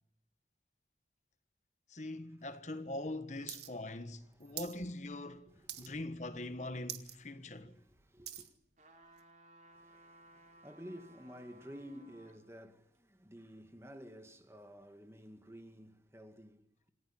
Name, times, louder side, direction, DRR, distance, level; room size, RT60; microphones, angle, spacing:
voice 1, 1.9-7.7, left 1 dB, 40° left, 1.4 m, -42 dB
sound 1, 3.5-3.7 4.0-4.8 5.1-5.4 5.7-6.1 6.5-6.6 6.8-7.2 7.6-8.5 9.2-9.3, right 12 dB, 70° right, 1.8 m, -45 dB
voice 2, 5.5-5.9 7.3-8.5 9.7-16.9, equal, 15° right, 2.1 m, -53 dB
sound 2, 8.8-12.4 12.9-13.0, right 1 dB, 45° right, 3.5 m, -60 dB
27.5 x 16.5 x 8.8 m
head